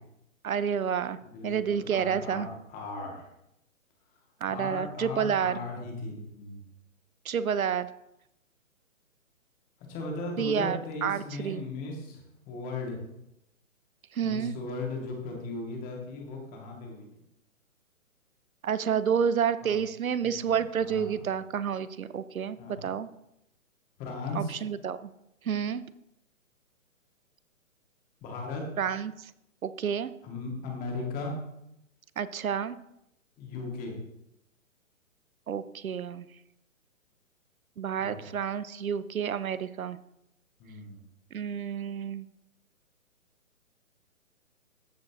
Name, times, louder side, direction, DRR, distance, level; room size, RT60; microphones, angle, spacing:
voice 1, 0.4-1.2 1.4-2.5 4.4-5.6 7.3-7.9 10.4-11.6 14.1-14.5 18.6-23.1 24.4-25.1 25.5-25.8 28.8-29.1 29.6-30.1 32.2-32.8 35.5-36.3 37.8-40.0 41.3-42.3, right 7 dB, 90° right, 15 dB, 0.6 m, -29 dB
voice 2, 1.3-3.3 4.4-6.6 9.9-13.0 14.2-17.1 19.6-19.7 20.2-21.2 22.6-22.9 24.0-24.6 28.2-28.6 30.2-31.3 33.4-34.0 38.0-38.3 40.6-41.0, left 3 dB, 20° left, 0 dB, 1.9 m, -37 dB
14.0 x 5.1 x 2.9 m, 0.83 s
hypercardioid pair, 135°, 41 cm